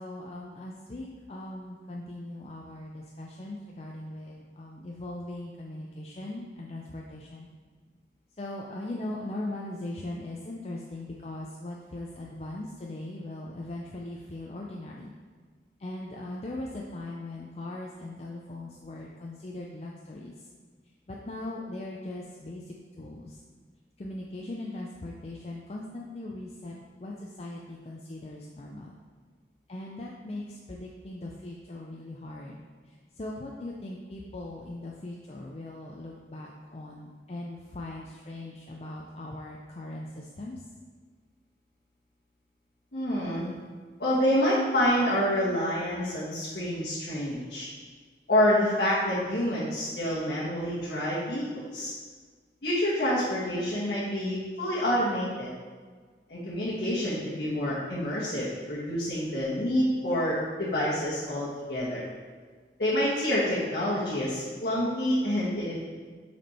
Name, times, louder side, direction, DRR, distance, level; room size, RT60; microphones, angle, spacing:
voice 1, 0.0-7.5 8.4-15.1 15.8-20.5 21.1-23.4 24.0-28.9 29.7-32.6 32.9-40.6, left 1 dB, 35° left, -2 dB, 0.4 m, -39 dB
voice 2, 42.9-43.5 44.0-47.7 48.3-51.9 52.6-55.5 56.3-62.0 62.8-65.9, equal, 60° left, -9 dB, 1.3 m, -27 dB
6.0 x 4.4 x 4.2 m, 1.6 s
head